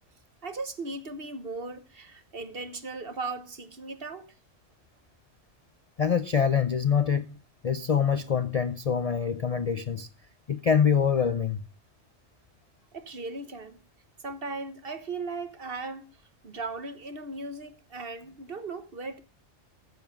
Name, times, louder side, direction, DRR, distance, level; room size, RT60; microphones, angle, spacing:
voice 1, 0.4-4.3 12.9-13.8 14.2-19.2, right 3 dB, 50° right, 1.5 m, -37 dB
voice 2, 6.0-7.4 7.6-10.1 10.5-11.6, left 7 dB, 45° left, 0.5 m, -25 dB
14.0 x 7.2 x 5.2 m
omnidirectional pair, 1.3 m